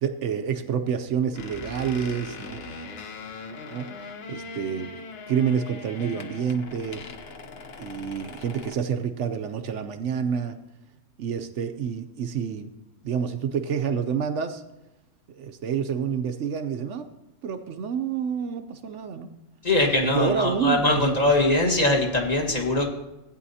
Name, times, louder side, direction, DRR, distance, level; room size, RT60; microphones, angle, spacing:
voice 1, 0.0-2.6 3.7-3.9 4.3-5.0 5.3-7.0 7.8-10.6 11.2-12.7 13.0-14.6 15.3-17.1 17.4-19.3 20.1-21.1, right 7 dB, 65° right, 8 dB, 0.9 m, -28 dB
sound 1, 1.3-8.7, left 3 dB, 50° left, 0.9 m, -40 dB
voice 2, 19.6-22.9, left 2 dB, 30° left, 0 dB, 1.6 m, -22 dB
15.5 x 9.4 x 2.8 m, 0.99 s
omnidirectional pair, 1.5 m